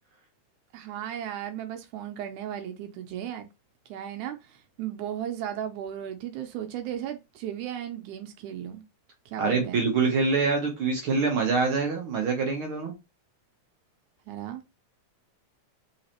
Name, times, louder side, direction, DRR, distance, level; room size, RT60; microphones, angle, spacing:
voice 1, 0.7-3.5 3.9-4.4 4.8-8.8 9.3-9.8 14.3-14.6, right 10 dB, 85° right, 2.1 m, -35 dB
voice 2, 9.4-12.9, right 4 dB, 65° right, 1.3 m, -25 dB
4.2 x 3.9 x 2.9 m
omnidirectional pair, 3.4 m